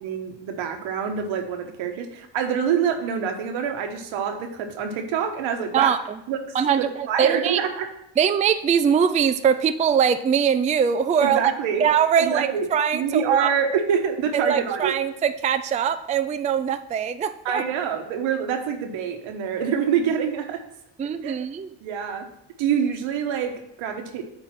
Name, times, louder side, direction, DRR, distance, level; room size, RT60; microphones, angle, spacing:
voice 1, 0.0-5.9 6.3-6.4 6.8-7.9 11.2-11.9 12.2-12.7 12.9-15.0 17.4-20.6 21.2-21.3 21.8-22.3 22.6-24.2, right 7 dB, 85° right, 5 dB, 1.3 m, -26 dB
voice 2, 5.7-6.2 6.5-7.6 8.2-11.4 11.8-13.5 14.3-17.6 21.0-21.7, right 7 dB, 20° right, 10 dB, 0.3 m, -22 dB
9.0 x 3.6 x 5.8 m, 0.81 s
cardioid pair, 90°, 46 cm